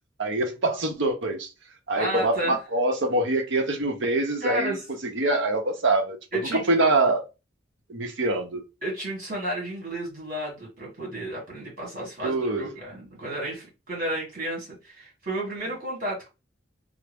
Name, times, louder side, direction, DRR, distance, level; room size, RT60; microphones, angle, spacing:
voice 1, 0.2-1.5 1.9-4.8 5.0-6.2 6.5-7.3 7.9-8.6 12.2-12.7, right 2 dB, 70° right, 0.7 m, -24 dB
voice 2, 2.0-2.6 4.4-4.8 6.3-6.7 8.8-16.3, right 1 dB, 45° right, 1.8 m, -32 dB
3.5 x 2.0 x 3.4 m
head